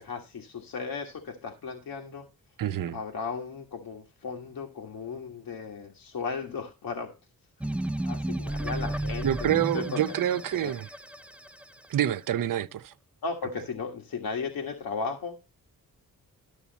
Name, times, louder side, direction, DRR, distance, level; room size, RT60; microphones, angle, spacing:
voice 1, 0.0-2.3 2.9-7.1 8.0-10.0 10.6-10.7 13.2-15.4, left 5 dB, 80° left, 1.7 m, -35 dB
voice 2, 2.6-3.0 9.2-10.9 11.9-12.9, right 11 dB, 65° right, 0.6 m, -27 dB
sound 1, 7.6-12.0, right 1 dB, 5° right, 0.4 m, -33 dB
12.5 x 7.0 x 4.0 m
wide cardioid pair, 100°, 35 cm